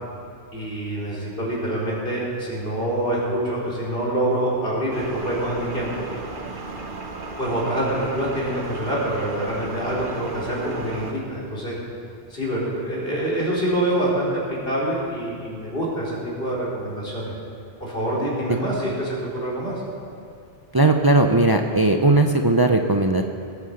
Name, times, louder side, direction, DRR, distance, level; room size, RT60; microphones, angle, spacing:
voice 1, 0.5-6.0 7.4-11.8 12.3-17.3 17.8-19.8, right 1 dB, 65° left, -6 dB, 4.1 m, -26 dB
sound 1, 4.9-11.1, right 3 dB, 55° right, 1.3 m, -35 dB
voice 2, 20.7-23.2, right 2 dB, 25° right, 5 dB, 0.6 m, -18 dB
19.0 x 9.4 x 6.6 m, 2.3 s
omnidirectional pair, 1.1 m